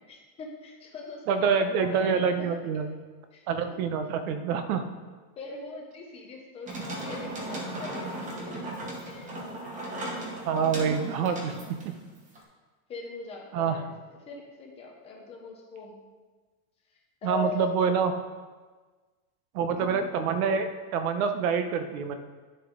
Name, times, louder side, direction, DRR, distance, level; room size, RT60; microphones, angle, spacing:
voice 1, 0.1-1.5 1.8-2.4 3.3-3.8 5.4-9.5 9.8-10.3 10.8-11.7 12.9-13.9 14.3-16.0 17.2-17.7 19.8-20.0, left 4 dB, 15° left, -1 dB, 0.5 m, -41 dB
voice 2, 1.3-2.9 3.5-4.9 10.4-12.0 13.5-13.8 17.2-18.1 19.5-22.2, right 6 dB, 60° right, 8 dB, 0.9 m, -26 dB
sound 1, 6.7-12.4, right 1 dB, 15° right, 1.0 m, -37 dB
10.5 x 6.9 x 3.8 m, 1.4 s
supercardioid pair, 170°, 49 cm